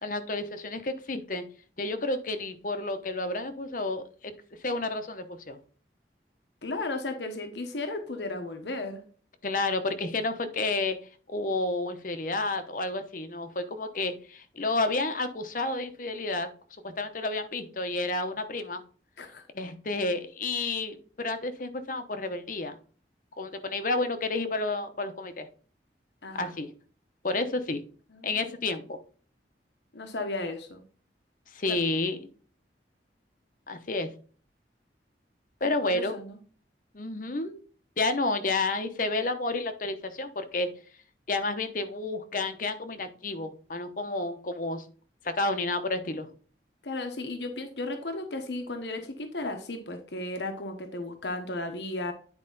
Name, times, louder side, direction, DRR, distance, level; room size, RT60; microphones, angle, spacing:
voice 1, 0.0-1.4 1.8-4.3 4.6-5.6 9.4-11.0 11.3-16.5 16.8-18.8 19.5-22.8 23.4-25.5 26.3-26.7 27.2-27.8 28.2-29.0 31.5-32.2 33.7-34.1 35.6-36.2 36.9-37.6 38.0-40.7 41.3-44.8 45.2-46.3, left 2 dB, 50° left, 9 dB, 0.9 m, -30 dB
voice 2, 6.6-9.0 19.2-19.4 26.2-26.5 28.1-28.3 29.9-30.8 31.7-31.8 35.8-36.4 46.8-52.1, left 2 dB, 80° left, 6 dB, 1.2 m, -35 dB
9.9 x 4.8 x 4.0 m, 0.41 s
head